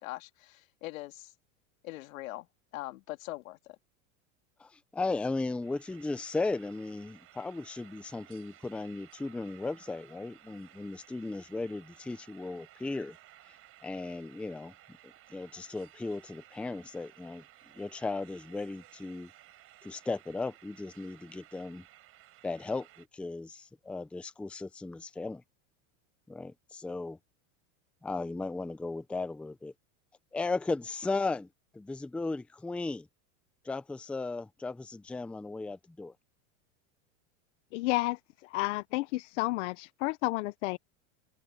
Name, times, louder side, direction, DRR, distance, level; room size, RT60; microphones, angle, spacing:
voice 1, 0.0-1.3 1.8-2.5 2.7-3.8, left 18 dB, 80° left, 2.4 m, -42 dB
voice 2, 4.6-13.2 13.8-14.7 15.0-17.4 17.7-19.3 19.8-21.8 22.4-25.4 26.3-27.2 28.0-29.7 30.3-31.5 31.7-33.1 33.6-36.1, left 3 dB, 5° left, 0.6 m, -36 dB
sound 1, 5.6-23.1, right 14 dB, 35° right, 4.3 m, -57 dB
voice 3, 37.7-38.2 38.5-40.8, left 20 dB, 65° left, 0.8 m, -31 dB
supercardioid pair, 150°, 40 cm